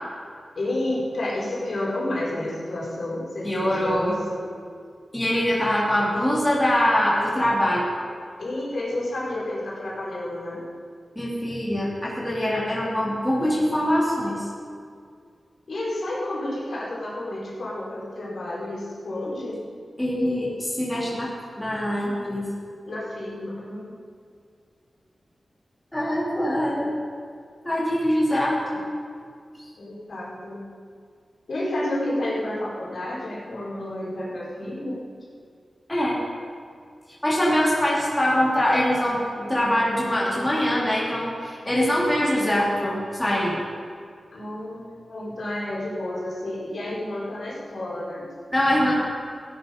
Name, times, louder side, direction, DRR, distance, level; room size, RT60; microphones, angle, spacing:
voice 1, 0.5-4.5 8.4-10.6 15.7-19.6 22.9-24.0 29.8-30.6 31.5-35.0 44.3-48.2, left 1 dB, 65° left, -6 dB, 4.5 m, -30 dB
voice 2, 3.4-4.2 5.1-7.8 11.1-14.5 20.0-22.5 25.9-27.0 27.6-28.9 29.6-29.7 35.9-36.1 37.2-43.6 48.5-49.0, equal, 10° left, -6 dB, 3.1 m, -23 dB
16.0 x 10.5 x 5.3 m, 2.2 s
wide cardioid pair, 100°, 0 cm